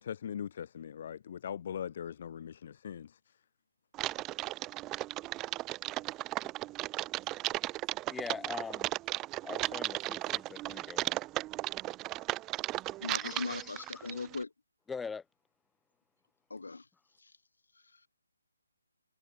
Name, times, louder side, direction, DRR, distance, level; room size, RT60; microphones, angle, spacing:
voice 1, 0.0-3.2, left 8 dB, 45° left, 0.7 m, -40 dB
Typing, 3.9-14.4, right 17 dB, 15° right, 0.9 m, -36 dB
voice 2, 8.1-8.9 9.4-11.2 13.2-14.1 14.9-15.2, left 5 dB, 5° left, 2.4 m, -42 dB
voice 3, 13.0-14.5 16.5-16.8 17.2-17.3, left 3 dB, 80° left, 3.0 m, -39 dB
figure-of-eight pair, 155°, 0 cm